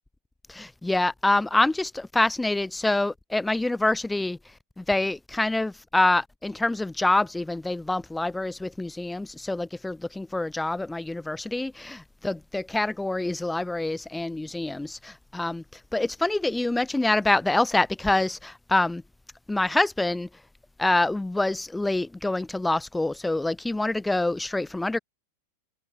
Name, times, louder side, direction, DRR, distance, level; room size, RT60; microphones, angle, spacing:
voice 1, 0.5-4.4 4.8-15.6 15.9-19.0 19.5-20.3 20.8-25.0, left 2 dB, 5° left, 0.3 m, -26 dB
figure-of-eight pair, 90°, 0 cm